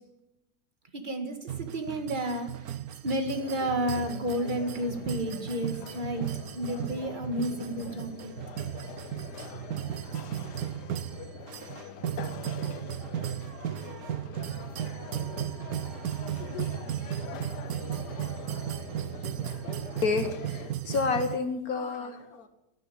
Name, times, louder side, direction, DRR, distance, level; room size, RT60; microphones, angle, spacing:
voice 1, 0.9-2.5 3.0-8.3, right 1 dB, 30° right, 6 dB, 1.8 m, -31 dB
sound 1, 1.5-21.4, right 11 dB, 65° right, 1.1 m, -36 dB
sound 2, 3.3-20.7, left 9 dB, 85° left, 1.4 m, -44 dB
voice 2, 20.0-22.5, left 4 dB, 65° left, 7 dB, 1.8 m, -29 dB
12.5 x 9.9 x 9.9 m, 0.89 s
omnidirectional pair, 1.7 m